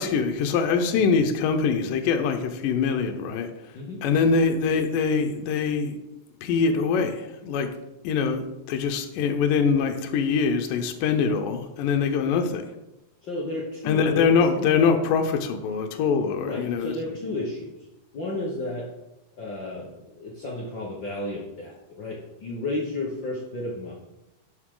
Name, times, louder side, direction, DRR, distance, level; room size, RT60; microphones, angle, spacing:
voice 1, 0.0-3.5 4.0-6.0 6.4-7.7 8.0-12.6 13.9-16.9, left 5 dB, 80° left, 5 dB, 2.4 m, -23 dB
voice 2, 3.7-4.0 13.2-14.9 16.4-17.8 18.1-18.9 19.4-24.0, left 2 dB, 60° left, -3 dB, 1.2 m, -32 dB
11.0 x 6.5 x 3.8 m, 0.92 s
omnidirectional pair, 3.9 m